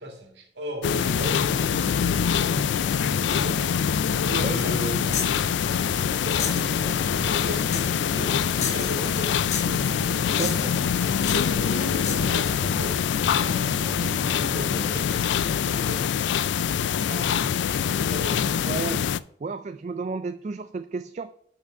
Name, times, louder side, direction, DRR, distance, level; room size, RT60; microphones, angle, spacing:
voice 1, 0.0-9.5 10.0-16.1 16.5-18.6, equal, 75° right, 3 dB, 2.0 m, -39 dB
sound 1, 0.8-19.2, left 8 dB, 80° left, 0.3 m, -24 dB
sound 2, 1.0-15.2, right 1 dB, 15° right, 2.0 m, -39 dB
voice 2, 4.3-4.7 10.4-10.8 18.7-19.1 19.4-21.3, right 4 dB, 40° right, 11 dB, 0.3 m, -32 dB
sound 3, 5.1-5.4 6.4-6.7 7.7-8.0 8.6-9.3 9.5-9.8 10.4-10.8 11.2-11.5 12.0-12.3, left 7 dB, 40° left, 1.0 m, -32 dB
6.4 x 5.8 x 6.4 m, 0.66 s
head